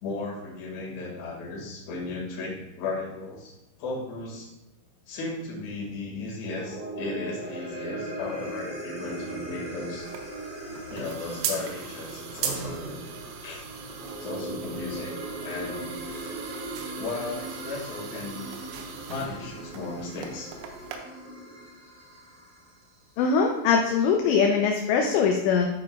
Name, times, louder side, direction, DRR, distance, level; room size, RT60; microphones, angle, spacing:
voice 1, 0.0-3.5 3.8-4.5 5.1-10.1 10.9-13.0 13.4-13.6 14.1-16.3 16.9-18.4 19.1-20.5, left 3 dB, 50° left, -5 dB, 2.4 m, -35 dB
sound 1, 6.3-22.8, right 1 dB, 45° right, 3.8 m, -39 dB
sound 2, 10.0-21.0, right 7 dB, 85° right, 3.1 m, -39 dB
voice 2, 23.2-25.7, left 6 dB, 80° left, 2 dB, 2.6 m, -22 dB
11.5 x 5.1 x 2.3 m, 0.91 s
omnidirectional pair, 5.6 m